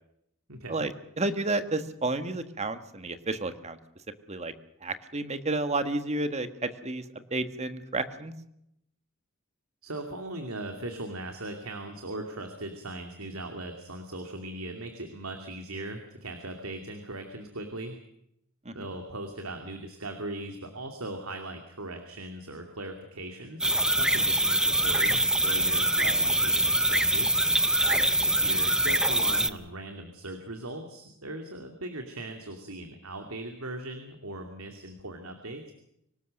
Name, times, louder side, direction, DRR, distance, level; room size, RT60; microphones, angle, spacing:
voice 1, 0.5-0.9 9.8-17.9 18.7-27.4 28.2-35.7, right 1 dB, 85° right, 5 dB, 2.7 m, -39 dB
voice 2, 1.2-3.8 4.3-4.5 4.8-7.0 7.3-8.3 18.6-18.9 26.0-26.2 27.8-28.1, right 2 dB, 30° right, 10 dB, 1.6 m, -31 dB
sound 1, 23.6-29.5, right 1 dB, 5° right, 0.8 m, -24 dB
25.0 x 19.0 x 6.6 m, 0.76 s
head